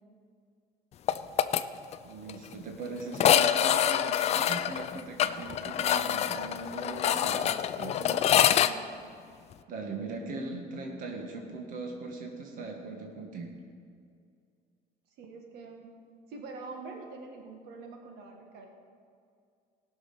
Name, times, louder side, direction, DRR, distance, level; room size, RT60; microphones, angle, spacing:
sound 1, 1.1-1.6 1.9-2.0 2.3-2.4 3.1-8.7, left 10 dB, 40° left, 0.4 m, -25 dB
voice 1, 2.0-8.0 9.7-13.5, right 3 dB, 55° right, 1 dB, 1.6 m, -39 dB
voice 2, 8.0-8.3 8.6-8.9 15.2-15.9 16.3-18.7, right 4 dB, 75° right, 2 dB, 1.6 m, -45 dB
18.5 x 6.4 x 5.5 m, 2.3 s
cardioid pair, 160°, 17 cm